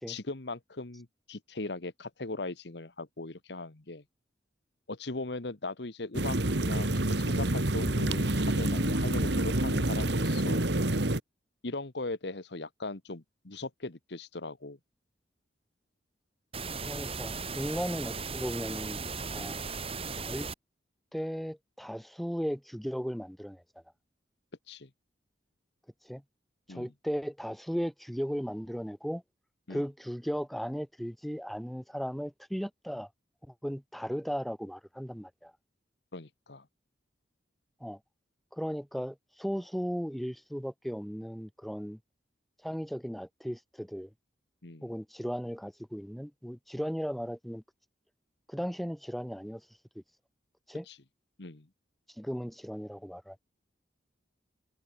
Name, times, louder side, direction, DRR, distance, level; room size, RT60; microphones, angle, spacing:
voice 1, 0.1-4.0 4.9-10.7 11.6-14.8 19.3-19.6 24.7-24.9 26.7-26.9 29.7-29.8 36.1-36.7 44.6-44.9 50.9-51.0 51.4-51.7, left 2 dB, 65° left, 1.4 m, -39 dB
sound 1, 6.1-11.2, right 1 dB, 65° right, 2.1 m, -28 dB
sound 2, 16.5-20.5, right 4 dB, 30° right, 3.7 m, -37 dB
voice 2, 16.8-19.0 19.3-19.6 20.2-20.5 21.1-23.6 26.0-26.2 26.7-29.2 29.7-33.1 33.5-35.5 37.8-38.0 38.5-42.0 42.6-44.1 44.8-47.6 48.5-49.6 49.9-50.0 50.7-50.9 52.2-53.4, equal, ahead, 1.0 m, -36 dB
head